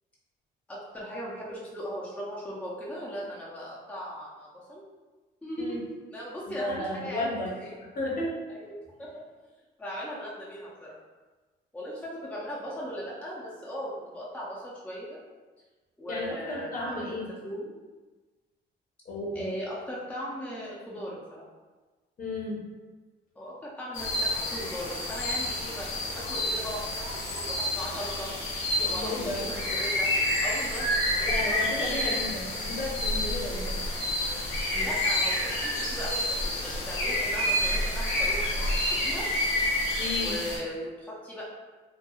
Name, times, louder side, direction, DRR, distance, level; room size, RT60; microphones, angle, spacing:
voice 1, 0.7-4.8 5.4-7.2 7.5-7.7 8.5-9.1 9.8-11.0 11.7-15.2 16.0-17.7 19.3-21.4 23.4-28.3 28.9-30.1 30.4-31.3 34.7-39.3 40.2-41.4, equal, 5° left, -6 dB, 0.5 m, -38 dB
voice 2, 6.6-7.5 7.8-8.4 16.1-17.3 19.0-19.5 22.2-22.6 28.8-29.4 31.3-33.8 40.0-40.4, left 1 dB, 45° left, -4 dB, 0.8 m, -33 dB
sound 1, 23.9-40.6, left 1 dB, 85° left, 0.8 m, -29 dB
3.0 x 2.3 x 2.3 m, 1.3 s
cardioid pair, 90°, 20 cm